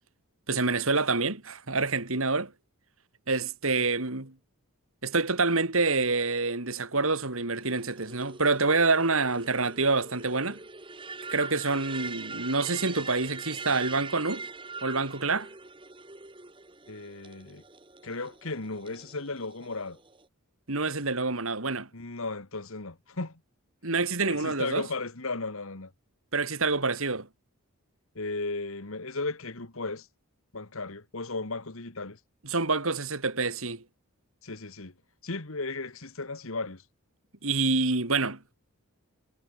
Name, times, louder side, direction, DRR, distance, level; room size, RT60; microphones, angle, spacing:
voice 1, 0.5-2.5 3.3-4.3 5.0-10.6 11.3-14.5 14.8-15.5 20.7-21.9 23.8-24.8 26.3-27.3 32.4-33.8 37.4-38.4, right 3 dB, 65° right, 2.8 m, -27 dB
sound 1, 7.6-20.2, right 4 dB, 20° right, 1.9 m, -43 dB
voice 2, 16.9-17.6 18.0-20.0 21.9-23.4 24.2-25.9 28.2-30.1 30.5-32.2 34.4-34.9 35.2-36.8, left 3 dB, 65° left, 1.8 m, -35 dB
head